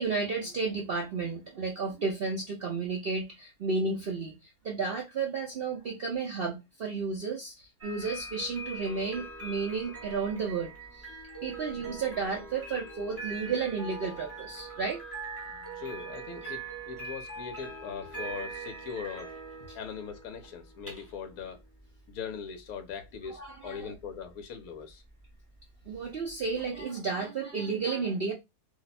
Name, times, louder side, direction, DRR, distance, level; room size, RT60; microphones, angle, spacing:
voice 1, 0.0-11.1 11.4-15.0 19.7-19.8 23.3-23.9 25.9-28.3, right 4 dB, 80° right, 0.5 m, -32 dB
sound 1, 7.8-26.8, right 3 dB, 10° right, 0.7 m, -43 dB
voice 2, 15.7-19.3 19.7-21.6 22.1-25.0, left 6 dB, 70° left, 1.0 m, -40 dB
2.7 x 2.1 x 4.0 m
omnidirectional pair, 1.8 m